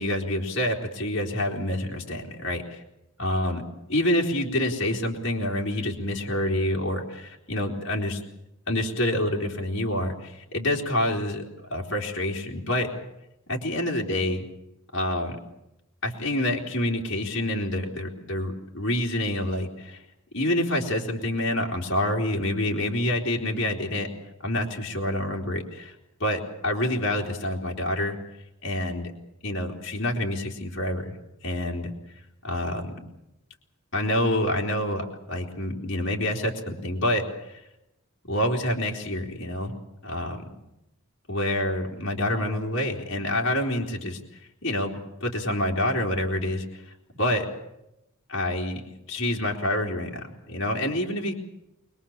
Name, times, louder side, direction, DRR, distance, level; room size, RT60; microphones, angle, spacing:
voice 1, 0.0-2.8 3.2-3.6 3.9-8.2 8.7-12.9 13.5-14.4 14.9-15.4 16.0-20.0 20.3-24.1 24.4-26.0 26.2-28.2 28.6-29.1 29.4-31.1 31.4-31.9 32.4-33.0 33.9-37.6 38.3-39.7 40.0-40.5 41.3-44.2 44.6-44.9 45.2-46.8 47.2-47.5 48.3-48.8 49.1-51.3, left 1 dB, 55° left, -1 dB, 3.6 m, -27 dB
23.5 x 22.5 x 7.3 m, 0.88 s
head